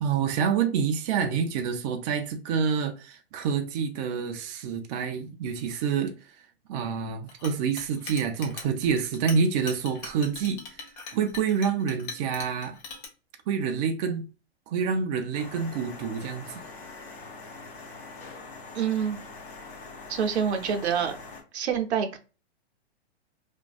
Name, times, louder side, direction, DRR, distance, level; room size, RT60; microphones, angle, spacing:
voice 1, 0.0-6.2 6.7-10.8 11.1-12.8 13.5-14.2 14.7-16.6, right 6 dB, 40° right, 0.4 m, -27 dB
Chink clink, 7.3-13.1, left 5 dB, 45° left, 0.8 m, -40 dB
sound 1, 15.3-21.4, left 3 dB, 75° left, 1.1 m, -43 dB
voice 2, 18.7-19.2 20.1-21.2 21.5-22.2, right 7 dB, 80° right, 0.7 m, -26 dB
2.5 x 2.2 x 2.3 m
hypercardioid pair, 125°, 32 cm